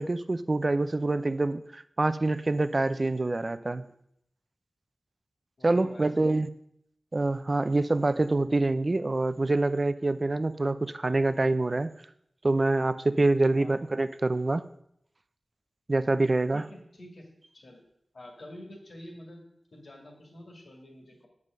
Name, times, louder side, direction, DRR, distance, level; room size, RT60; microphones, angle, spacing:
voice 1, 0.0-3.8 5.6-6.5 7.1-11.9 12.4-14.7 15.9-16.6, right 2 dB, 45° right, 13 dB, 0.4 m, -26 dB
voice 2, 3.6-3.9 5.6-6.2 13.6-13.8 16.5-17.3 17.5-17.8 18.1-19.4 19.7-21.3, left 1 dB, 70° left, 0 dB, 2.1 m, -47 dB
7.5 x 4.8 x 6.5 m, 0.74 s
wide cardioid pair, 60°, 0 cm